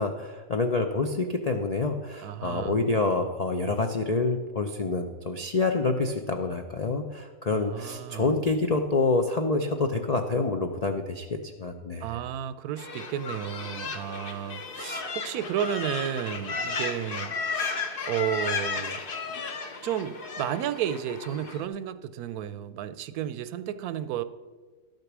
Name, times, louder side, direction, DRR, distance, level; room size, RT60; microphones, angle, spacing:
voice 1, 0.0-12.2, left 3 dB, 60° left, 4 dB, 0.4 m, -27 dB
voice 2, 2.2-2.9 7.5-8.4 12.0-17.7 18.1-19.0 19.8-24.2, right 10 dB, 80° right, 13 dB, 1.1 m, -32 dB
sound 1, 12.8-21.6, left 4 dB, 40° left, 1.0 m, -34 dB
12.0 x 6.7 x 6.0 m, 1.3 s
omnidirectional pair, 1.6 m